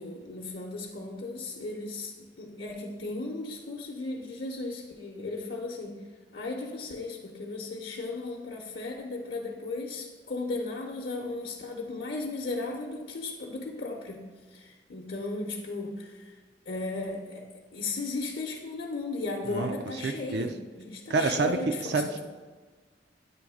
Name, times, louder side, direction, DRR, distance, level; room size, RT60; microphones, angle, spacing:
voice 1, 0.0-6.0 6.3-16.4 16.7-17.4 17.7-22.2, left 3 dB, 65° left, -2 dB, 0.8 m, -36 dB
voice 2, 20.0-20.5 21.1-21.6 21.9-22.2, right 3 dB, 60° right, 7 dB, 0.4 m, -27 dB
9.2 x 3.1 x 4.9 m, 1.4 s
head